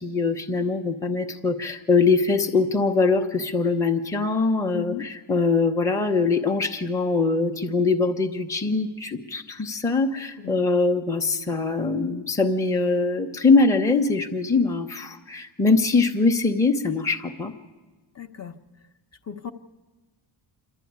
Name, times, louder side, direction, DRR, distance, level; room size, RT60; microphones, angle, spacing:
voice 1, 0.0-17.5, left 4 dB, 5° left, 4 dB, 0.8 m, -22 dB
voice 2, 4.7-5.1 10.4-10.6 18.1-18.5 19.3-19.5, left 9 dB, 30° left, 7 dB, 0.9 m, -35 dB
27.0 x 12.0 x 9.5 m, 1.3 s
cardioid pair, 145°, 49 cm